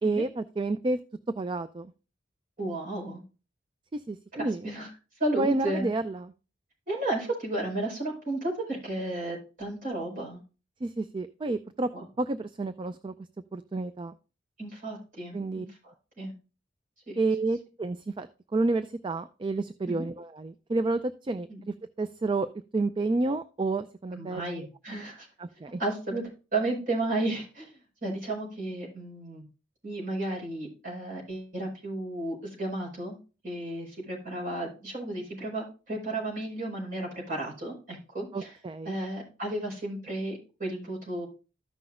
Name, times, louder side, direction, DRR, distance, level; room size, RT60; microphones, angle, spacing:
voice 1, 0.0-1.0 1.4-1.9 3.9-4.7 5.4-6.3 10.8-11.9 12.2-13.1 13.5-14.1 15.3-15.7 17.2-18.3 18.5-22.5 22.7-24.4 25.4-25.8 38.3-39.0, right 2 dB, 25° right, 12 dB, 0.3 m, -30 dB
voice 2, 2.6-3.2 4.3-4.9 5.2-5.9 6.9-10.4 11.9-12.0 14.6-15.7 16.2-16.3 17.1-17.2 19.9-20.1 21.5-21.6 24.1-25.3 25.8-26.2 26.5-27.7 28.0-29.4 29.8-33.1 33.4-38.5 38.8-41.3, right 2 dB, 45° right, -2 dB, 4.9 m, -33 dB
14.0 x 5.9 x 2.5 m, 0.33 s
head